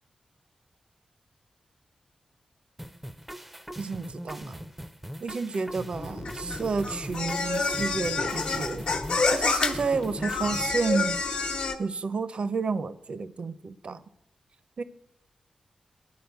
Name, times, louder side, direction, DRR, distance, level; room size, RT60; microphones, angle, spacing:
sound 1, 2.8-10.8, equal, 5° right, 0.5 m, -41 dB
voice 1, 3.8-4.6 5.2-8.9 9.3-11.2 11.8-14.0 14.8-14.9, right 4 dB, 55° right, 14 dB, 0.6 m, -30 dB
sound 2, 6.0-11.7, left 4 dB, 65° left, 1.1 m, -29 dB
10.5 x 4.9 x 8.0 m, 0.84 s
wide cardioid pair, 80°, 2 cm